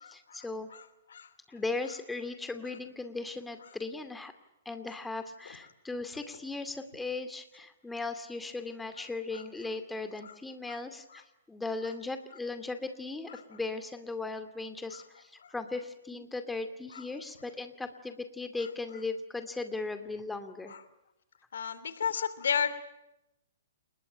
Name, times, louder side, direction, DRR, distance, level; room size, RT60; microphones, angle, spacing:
voice 1, 0.1-0.7 1.5-4.3 4.7-20.8, left 3 dB, 5° left, 9 dB, 2.5 m, -37 dB
voice 2, 21.5-22.7, left 7 dB, 70° left, 14 dB, 2.8 m, -30 dB
29.5 x 21.0 x 9.1 m, 0.88 s
hypercardioid pair, 120°, 0 cm